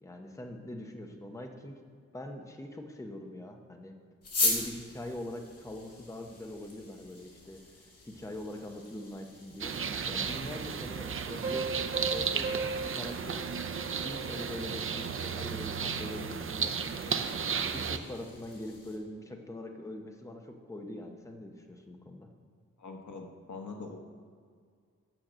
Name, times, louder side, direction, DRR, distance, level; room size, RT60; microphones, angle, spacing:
voice 1, 0.0-1.8 2.1-3.9 4.4-9.8 10.1-13.5 14.0-17.2 17.7-22.3, left 1 dB, 10° left, 3 dB, 0.8 m, -43 dB
sound 1, 4.2-19.0, left 2 dB, 55° left, 2.0 m, -40 dB
sound 2, 9.6-18.0, right 6 dB, 45° right, 0.5 m, -34 dB
Piano, 11.4-14.7, right 4 dB, 15° right, 3.0 m, -37 dB
voice 2, 22.8-24.0, left 3 dB, 80° left, 2 dB, 1.3 m, -43 dB
9.0 x 6.5 x 7.3 m, 2.1 s
wide cardioid pair, 170°, 29 cm